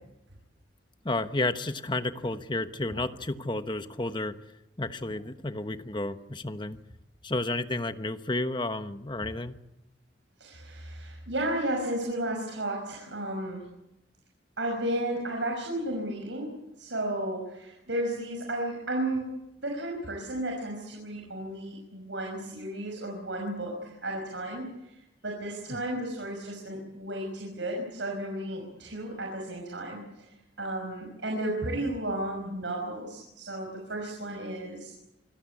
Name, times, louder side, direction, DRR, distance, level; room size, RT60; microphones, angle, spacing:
voice 1, 1.0-4.4 4.8-6.8 7.2-9.6 25.7-25.9, left 2 dB, 25° left, 10 dB, 1.1 m, -31 dB
voice 2, 10.4-13.6 14.6-19.3 19.6-25.0 25.2-34.9, right 1 dB, 85° right, 1 dB, 5.9 m, -33 dB
26.0 x 17.0 x 8.6 m, 0.90 s
head